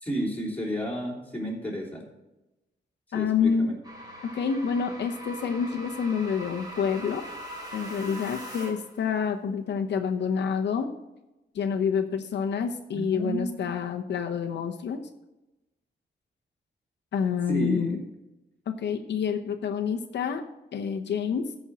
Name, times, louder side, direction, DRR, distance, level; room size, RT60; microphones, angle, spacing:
voice 1, 0.0-2.0 3.1-3.7 12.9-13.6 17.5-17.9, equal, 10° left, -3 dB, 3.3 m, -31 dB
voice 2, 3.1-3.7 4.3-7.2 7.7-10.9 11.5-15.0 17.1-18.0 18.7-20.4 20.7-21.5, left 6 dB, 75° left, 4 dB, 0.9 m, -28 dB
sound 1, 3.8-9.0, equal, 20° right, 3.2 m, -41 dB
14.0 x 5.4 x 6.1 m, 0.98 s
wide cardioid pair, 155°, 18 cm